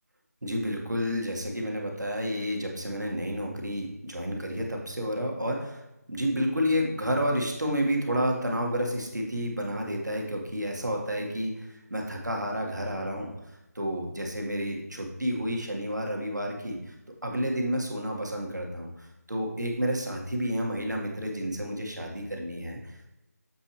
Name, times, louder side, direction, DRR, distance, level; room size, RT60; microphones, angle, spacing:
voice 1, 0.4-5.8 6.1-13.3 13.8-16.9 17.2-23.1, equal, 90° right, 0 dB, 1.8 m, -30 dB
7.4 x 5.9 x 3.2 m, 0.95 s
figure-of-eight pair, 165°, 9 cm